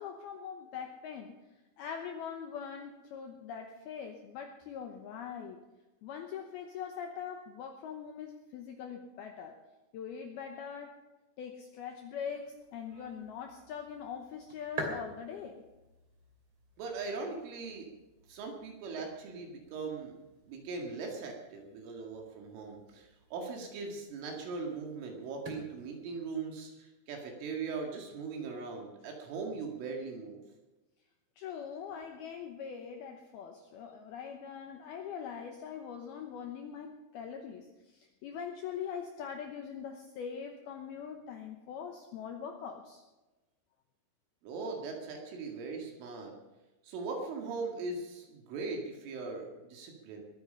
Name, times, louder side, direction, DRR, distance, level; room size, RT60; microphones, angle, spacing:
voice 1, 0.0-1.3 1.8-5.6 6.0-9.6 9.9-10.9 11.4-15.6 31.4-43.0, left 7 dB, 85° left, 4 dB, 2.2 m, -42 dB
sound 1, 12.3-26.5, right 2 dB, 30° right, 2.7 m, -49 dB
voice 2, 16.8-17.9 18.3-20.2 20.5-30.4 44.4-46.3 46.8-50.2, right 4 dB, 75° right, 1 dB, 4.5 m, -40 dB
21.5 x 9.4 x 5.6 m, 1.1 s
omnidirectional pair, 5.9 m